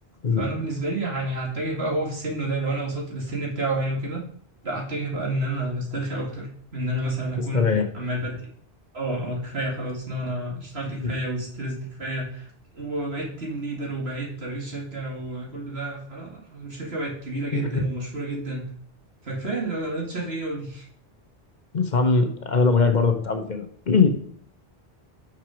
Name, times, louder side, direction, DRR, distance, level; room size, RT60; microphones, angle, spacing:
voice 1, 0.4-4.2 4.6-6.5 6.7-7.6 7.9-8.5 8.9-12.5 12.7-18.7 19.2-20.9, right 1 dB, 85° right, -2 dB, 2.4 m, -30 dB
voice 2, 7.5-7.8 11.0-11.1 17.5-17.8 21.7-24.1, left 4 dB, 50° left, 6 dB, 1.0 m, -21 dB
6.0 x 6.0 x 5.0 m, 0.62 s
omnidirectional pair, 1.0 m